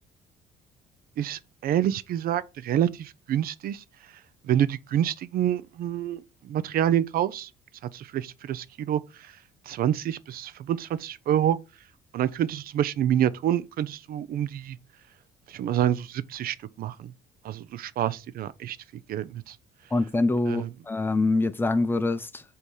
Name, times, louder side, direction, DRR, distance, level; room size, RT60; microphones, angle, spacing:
voice 1, 1.2-3.8 4.4-7.5 7.9-9.3 9.7-11.6 12.1-14.8 15.5-17.1 17.4-18.8 19.1-19.6 20.5-20.7, right 10 dB, 60° right, 0.5 m, -27 dB
voice 2, 19.9-22.4, left 2 dB, 10° left, 0.6 m, -25 dB
7.9 x 2.9 x 5.3 m
cardioid pair, 110°, 17 cm